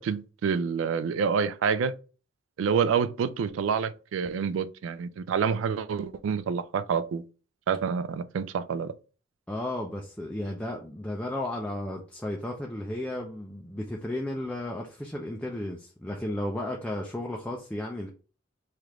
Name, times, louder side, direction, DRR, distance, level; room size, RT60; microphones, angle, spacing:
voice 1, 0.0-1.9 2.6-7.2 7.7-8.9, right 6 dB, 90° right, 0.3 m, -27 dB
voice 2, 9.5-18.1, left 1 dB, 5° left, 0.3 m, -34 dB
3.2 x 2.4 x 3.0 m
head